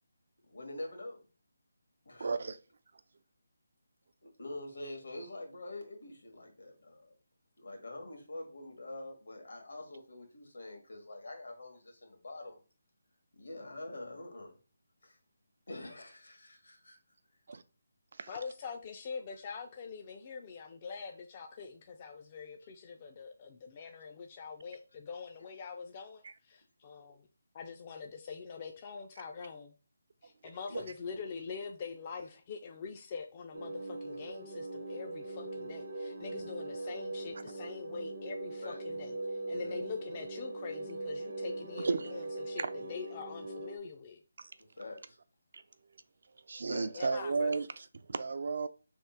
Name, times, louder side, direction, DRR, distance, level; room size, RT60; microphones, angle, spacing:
voice 1, 0.4-1.2 2.1-2.3 4.2-7.1 7.6-12.6 13.3-14.5 15.0-15.2 15.7-17.0 22.6-22.7 30.7-31.2 38.6-38.8 44.8-45.2 46.7-46.9, left 2 dB, 75° left, 1.6 m, -45 dB
voice 2, 2.2-2.6 17.5-17.6 18.2-18.3 26.2-26.3 30.7-30.8 41.8-42.1 42.6-42.7 44.4-44.5 45.5-45.6 46.5-48.7, right 4 dB, 60° right, 0.4 m, -34 dB
voice 3, 18.3-27.3 27.5-29.7 30.2-39.1 39.5-44.2 46.9-47.5, left 5 dB, 30° left, 0.4 m, -44 dB
sound 1, 33.5-43.8, right 2 dB, 75° right, 0.8 m, -40 dB
3.5 x 2.4 x 4.4 m
figure-of-eight pair, 160°, 0 cm